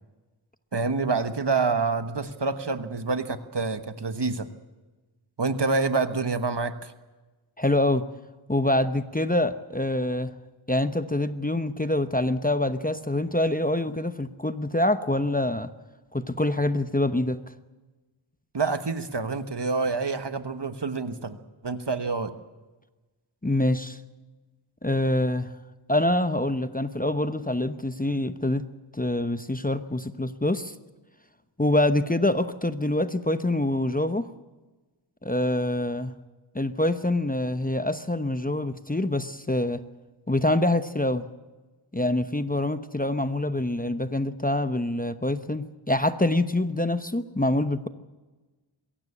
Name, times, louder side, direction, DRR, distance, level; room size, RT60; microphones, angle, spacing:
voice 1, 0.7-4.5 5.4-6.9 18.5-21.4 21.6-22.3, right 4 dB, 55° right, 10 dB, 1.3 m, -27 dB
voice 2, 7.6-8.1 8.5-10.3 10.7-15.7 16.1-17.4 23.4-24.0 24.8-25.5 25.9-28.6 29.0-30.7 31.6-34.3 35.2-36.1 36.5-39.8 40.3-41.3 41.9-47.9, left 1 dB, 15° left, 10 dB, 0.9 m, -25 dB
22.5 x 16.5 x 8.6 m, 1.2 s
wide cardioid pair, 55°, 49 cm